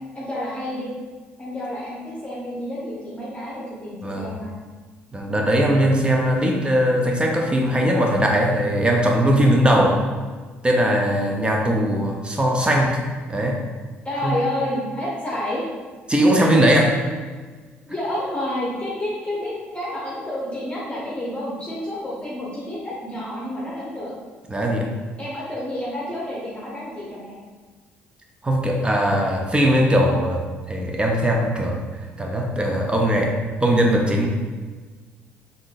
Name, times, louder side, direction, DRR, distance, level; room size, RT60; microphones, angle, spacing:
voice 1, 0.1-0.9 1.4-4.5 9.8-10.0 14.0-15.6 17.9-24.1 25.2-27.4, left 1 dB, 20° left, -6 dB, 0.9 m, -29 dB
voice 2, 4.0-4.4 5.1-10.0 10.6-13.0 13.3-13.6 14.2-14.4 16.1-17.0 24.5-24.9 28.4-31.8 32.2-33.3 33.6-34.3, equal, 15° right, 0 dB, 0.5 m, -20 dB
3.6 x 2.6 x 2.4 m, 1.4 s
figure-of-eight pair, 50°, 6 cm